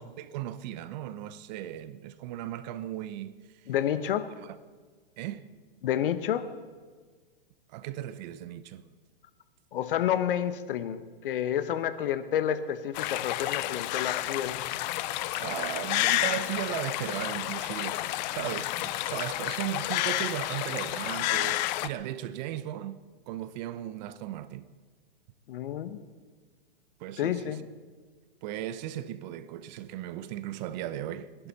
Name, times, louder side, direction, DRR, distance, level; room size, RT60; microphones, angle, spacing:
voice 1, 0.2-3.3 4.4-4.6 5.2-5.5 7.7-8.8 15.4-18.0 18.3-23.0 23.3-24.7 27.0-27.6 28.4-31.5, right 12 dB, 50° right, 1.0 m, -36 dB
voice 2, 3.7-4.3 5.8-6.5 9.7-14.5 25.5-26.0 27.2-27.6, left 10 dB, 65° left, 1.2 m, -29 dB
sound 1, 12.9-21.9, left 16 dB, 50° left, 0.7 m, -30 dB
28.5 x 11.0 x 4.3 m
hypercardioid pair, 120°, 29 cm